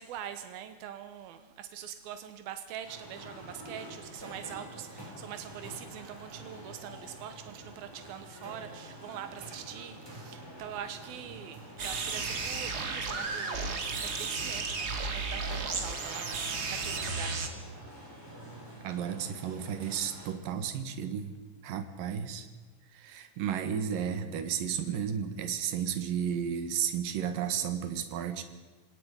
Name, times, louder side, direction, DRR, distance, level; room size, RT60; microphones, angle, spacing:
voice 1, 0.0-17.4, right 9 dB, 90° right, 9 dB, 2.9 m, -43 dB
sound 1, 2.8-20.3, right 1 dB, 5° right, 6.4 m, -47 dB
sound 2, 11.8-17.5, right 4 dB, 35° right, 1.8 m, -34 dB
voice 2, 18.8-21.3 21.6-22.5 22.9-28.4, right 8 dB, 70° right, 8 dB, 3.2 m, -33 dB
27.5 x 18.0 x 5.4 m, 1.4 s
omnidirectional pair, 4.2 m